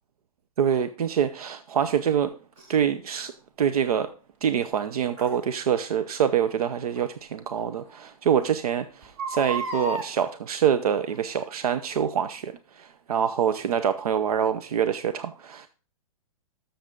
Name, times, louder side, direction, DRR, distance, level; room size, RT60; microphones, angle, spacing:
voice 1, 0.6-2.3 2.7-3.3 3.6-4.1 4.4-15.7, right 8 dB, 90° right, 11 dB, 0.7 m, -25 dB
Crying sobbing, 2.6-2.7 5.2-5.4 7.0-7.1 7.6-7.7 7.9-8.0 9.0-10.1 11.1-11.4 12.0-12.1, right 3 dB, 30° right, 1.9 m, -32 dB
13.0 x 6.9 x 3.8 m, 0.39 s
hypercardioid pair, 150°, 19 cm